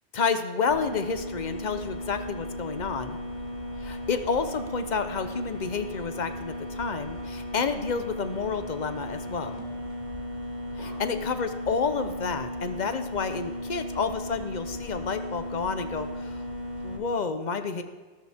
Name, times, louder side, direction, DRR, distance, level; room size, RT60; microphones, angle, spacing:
voice 1, 0.1-3.2 3.8-9.6 10.8-16.4 16.8-17.8, left 5 dB, 45° left, 9 dB, 0.9 m, -30 dB
sound 1, 0.7-17.0, left 1 dB, 40° right, 1.9 m, -36 dB
15.0 x 13.0 x 3.5 m, 1.3 s
omnidirectional pair, 1.1 m